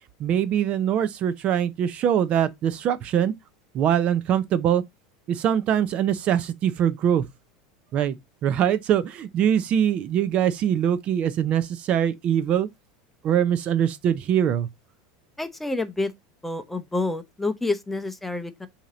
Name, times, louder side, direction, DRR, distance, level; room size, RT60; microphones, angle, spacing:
voice 1, 0.2-3.3 3.7-4.8 5.3-7.2 7.9-8.1 8.4-12.7 13.2-14.7, right 9 dB, 35° right, 0.6 m, -23 dB
voice 2, 15.4-16.1 16.4-18.7, left 2 dB, 5° left, 0.7 m, -28 dB
7.2 x 2.8 x 4.9 m
supercardioid pair, 145°, 3 cm